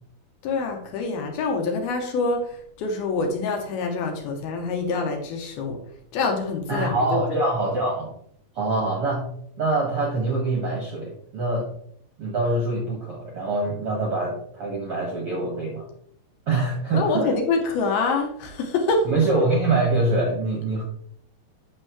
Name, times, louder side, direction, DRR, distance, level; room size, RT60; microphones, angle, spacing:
voice 1, 0.4-5.8 6.1-7.2 16.9-19.1, left 3 dB, 75° left, 3 dB, 2.8 m, -26 dB
voice 2, 6.7-8.1 8.5-9.3 9.6-11.7 12.2-15.8 16.5-17.3 19.0-20.8, right 2 dB, 60° right, -2 dB, 1.5 m, -24 dB
8.9 x 6.8 x 3.1 m, 0.66 s
omnidirectional pair, 4.9 m